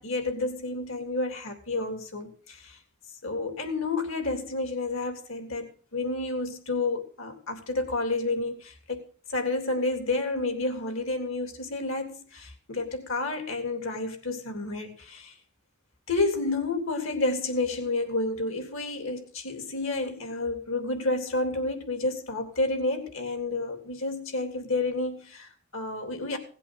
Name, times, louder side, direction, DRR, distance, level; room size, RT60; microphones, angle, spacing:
voice 1, 0.0-2.8 3.2-9.0 9.3-15.4 16.1-26.4, left 2 dB, 65° left, 3.5 m, -30 dB
18.0 x 8.3 x 6.5 m
head